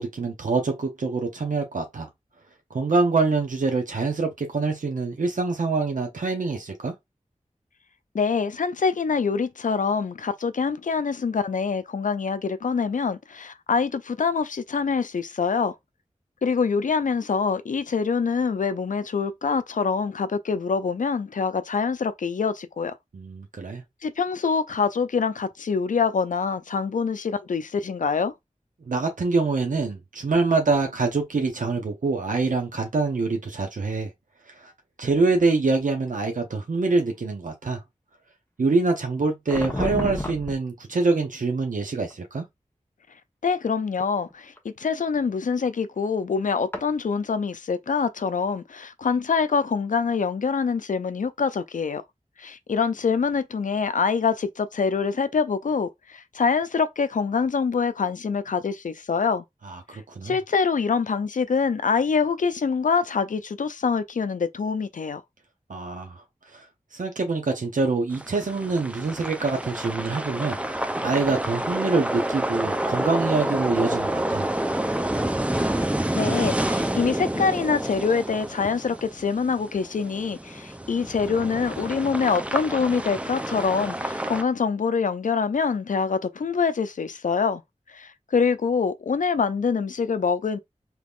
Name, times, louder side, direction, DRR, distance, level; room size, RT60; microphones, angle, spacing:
voice 1, 0.0-2.1 2.7-6.9 23.1-23.8 28.9-34.1 34.5-34.7 35.0-37.8 38.6-42.4 59.6-60.4 65.7-66.2 66.5-66.6 66.9-74.5, right 3 dB, 80° right, 0.7 m, -25 dB
voice 2, 8.1-15.8 16.4-22.9 24.0-28.3 43.4-52.0 52.4-59.4 60.2-65.2 76.1-87.6 87.9-90.6, left 5 dB, 75° left, 0.4 m, -25 dB
sound 1, 39.5-40.5 42.1-42.4 44.3-44.6 46.7-46.9, left 1 dB, 15° left, 0.9 m, -29 dB
sound 2, 68.1-84.4, right 1 dB, 10° right, 0.5 m, -29 dB
3.5 x 2.9 x 2.4 m
wide cardioid pair, 55°, 13 cm